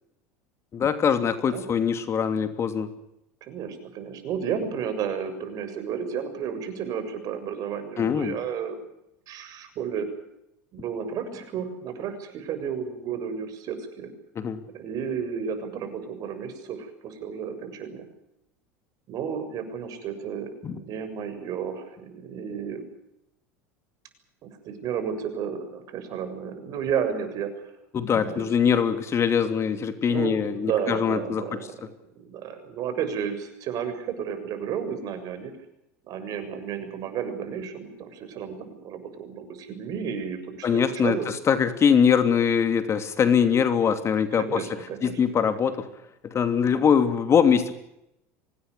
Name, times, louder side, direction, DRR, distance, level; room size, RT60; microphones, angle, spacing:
voice 1, 0.7-2.9 8.0-8.4 14.4-14.6 20.6-20.8 27.9-31.4 40.6-45.9 46.2-47.7, left 7 dB, 35° left, 9 dB, 2.8 m, -22 dB
voice 2, 3.4-8.8 9.3-10.1 10.7-14.1 14.7-18.1 19.1-22.9 24.4-27.7 28.3-28.5 29.5-31.8 32.2-35.5 36.0-41.3 44.0-45.5, right 7 dB, 50° right, 9 dB, 7.1 m, -32 dB
25.0 x 19.0 x 8.3 m, 0.83 s
hypercardioid pair, 85°, 8 cm